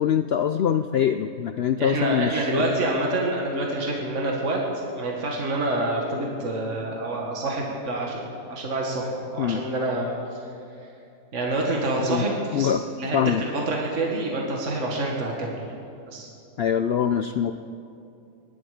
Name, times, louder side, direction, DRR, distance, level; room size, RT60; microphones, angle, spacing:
voice 1, 0.0-2.5 9.4-9.6 12.0-12.2 12.5-12.8 13.1-13.4 16.6-17.5, left 8 dB, 70° left, 9 dB, 0.6 m, -23 dB
voice 2, 1.8-4.6 4.9-10.4 11.3-15.6 16.1-16.3, right 2 dB, 55° right, -1 dB, 2.1 m, -27 dB
24.5 x 11.5 x 5.1 m, 2.6 s
omnidirectional pair, 1.6 m